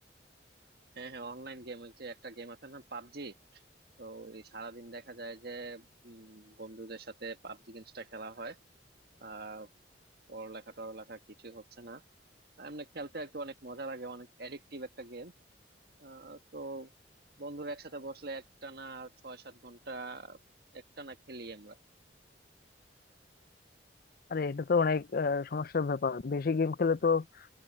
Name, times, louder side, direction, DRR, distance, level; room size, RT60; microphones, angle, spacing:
voice 1, 0.9-3.6 4.0-8.6 9.2-9.7 10.3-12.0 12.6-15.3 16.0-16.9 17.4-20.4 20.7-21.8, right 3 dB, 60° right, 1.7 m, -43 dB
voice 2, 24.3-27.2, left 5 dB, 55° left, 0.5 m, -29 dB
head